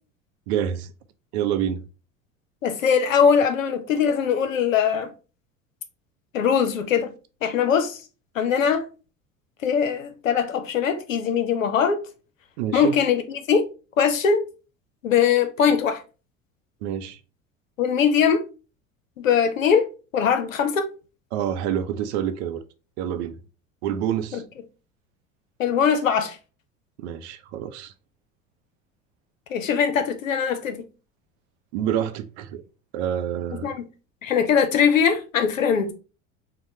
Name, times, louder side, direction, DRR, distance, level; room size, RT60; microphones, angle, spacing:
voice 1, 0.5-0.9 1.3-1.8 12.6-13.0 16.8-17.2 21.3-22.6 23.0-23.4 23.8-24.4 27.0-27.9 31.7-32.6 32.9-33.7, right 10 dB, 60° right, 0.5 m, -27 dB
voice 2, 2.6-5.1 6.3-7.1 7.4-8.0 8.3-8.8 9.6-12.0 12.7-13.6 14.0-14.4 15.0-16.0 17.8-18.4 19.2-19.9 20.1-20.9 24.3-24.4 25.6-26.4 29.5-30.8 33.5-33.8 34.2-35.9, left 7 dB, 80° left, 0.6 m, -21 dB
4.1 x 2.2 x 3.2 m
figure-of-eight pair, 70°, 39 cm